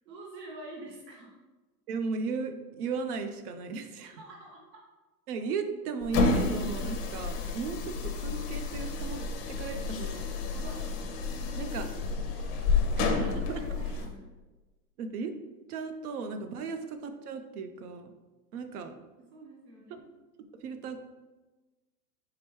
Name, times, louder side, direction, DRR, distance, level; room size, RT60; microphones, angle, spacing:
voice 1, 0.0-1.3 4.0-4.6 10.5-10.9 11.3-12.0 12.3-12.4 13.6-14.3 19.2-20.1, right 2 dB, 85° right, -2 dB, 1.0 m, -47 dB
voice 2, 1.9-4.2 5.3-10.3 11.6-11.9 13.0-13.7 15.0-15.3 15.7-18.1 18.5-18.9 19.9-20.0 20.4-21.0, right 5 dB, 65° right, 8 dB, 0.7 m, -36 dB
sound 1, 6.0-14.1, left 4 dB, 30° left, 0.5 m, -30 dB
4.9 x 3.4 x 3.1 m, 1.2 s
hypercardioid pair, 130°, 49 cm